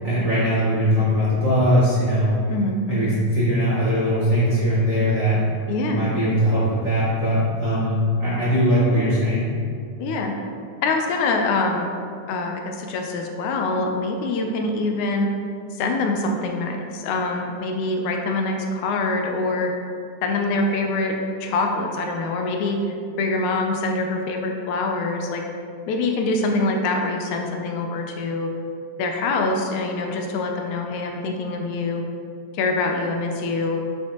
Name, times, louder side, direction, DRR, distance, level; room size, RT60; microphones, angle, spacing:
voice 1, 0.0-2.3 2.9-5.4 5.9-9.6, equal, 35° right, -11 dB, 1.3 m, -20 dB
voice 2, 2.5-3.1 5.7-6.1 10.0-10.4 10.8-11.9 12.3-15.3 15.7-19.7 20.2-21.2 21.4-22.8 23.2-25.4 25.9-28.5 29.0-32.0 32.5-33.8, left 3 dB, 80° left, 3 dB, 2.0 m, -24 dB
8.8 x 5.3 x 2.9 m, 2.3 s
omnidirectional pair, 3.5 m